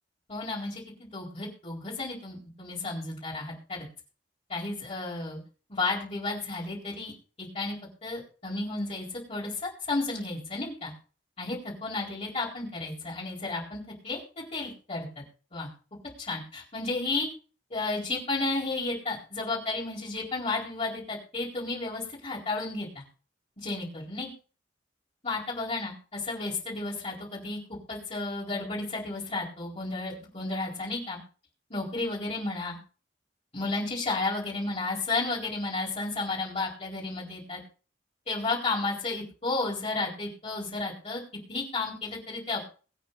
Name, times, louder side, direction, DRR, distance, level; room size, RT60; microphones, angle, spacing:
voice 1, 0.3-3.9 4.5-5.4 5.7-7.1 7.4-7.8 8.0-10.9 11.4-15.2 15.5-15.7 16.2-17.3 17.7-23.0 23.6-24.3 25.2-25.9 26.3-27.6 27.9-31.2 31.7-32.8 33.5-37.6 38.3-41.2 41.5-42.7, left 3 dB, 35° left, -7 dB, 4.2 m, -32 dB
22.5 x 8.7 x 2.6 m, 0.37 s
head